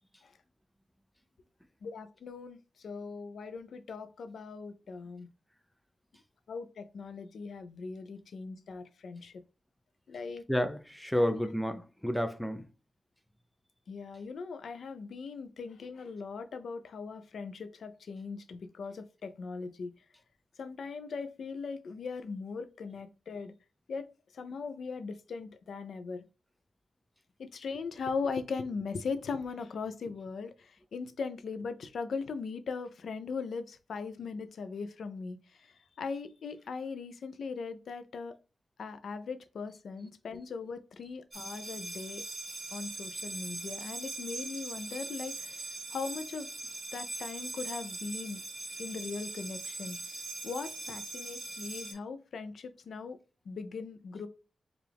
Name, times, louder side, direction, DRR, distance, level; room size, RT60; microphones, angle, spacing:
voice 1, 1.8-5.3 6.5-9.4 10.1-10.4 11.2-11.4 13.9-19.9 20.6-23.5 23.9-24.1 24.3-26.2 27.4-38.3 38.8-42.2 42.7-46.5 46.9-48.4 48.8-50.0 50.4-53.2 53.5-54.3, left 4 dB, 75° left, 0.5 m, -39 dB
voice 2, 10.5-12.7, equal, 5° left, 0.5 m, -30 dB
sound 1, 41.3-51.9, right 2 dB, 35° right, 1.1 m, -41 dB
4.7 x 2.4 x 3.3 m
wide cardioid pair, 120°, 0 cm